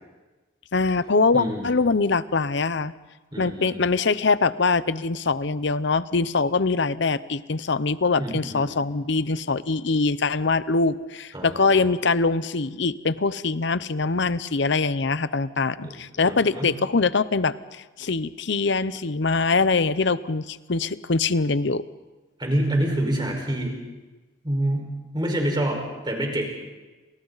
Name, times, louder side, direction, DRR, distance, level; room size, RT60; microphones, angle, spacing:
voice 1, 0.7-2.9 3.4-21.8, left 4 dB, 60° left, 15 dB, 0.7 m, -23 dB
voice 2, 1.3-1.7 3.3-3.8 8.2-8.6 11.3-11.8 15.8-16.0 16.2-16.7 22.4-23.7 24.4-26.4, right 1 dB, 20° right, 1 dB, 5.0 m, -27 dB
29.5 x 27.0 x 4.1 m, 1.2 s
head